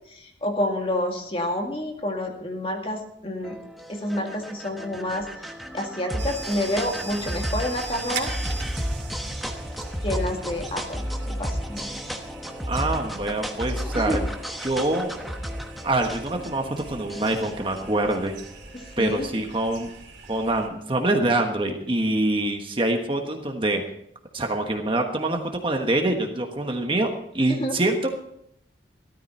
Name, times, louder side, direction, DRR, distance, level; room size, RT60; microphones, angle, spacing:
voice 1, 0.1-3.6 3.9-8.3 10.0-11.9 13.9-14.2 18.7-19.3 27.5-27.8, left 1 dB, 30° left, 2 dB, 2.0 m, -29 dB
sound 1, 3.4-19.0, equal, ahead, 1.1 m, -33 dB
sound 2, 6.2-20.7, right 4 dB, 70° right, 2.6 m, -41 dB
voice 2, 12.7-14.2 14.6-15.1 15.8-18.4 19.0-19.9 20.3-23.8 24.3-28.2, right 2 dB, 30° right, 3 dB, 1.3 m, -25 dB
15.5 x 13.0 x 4.4 m, 0.74 s
head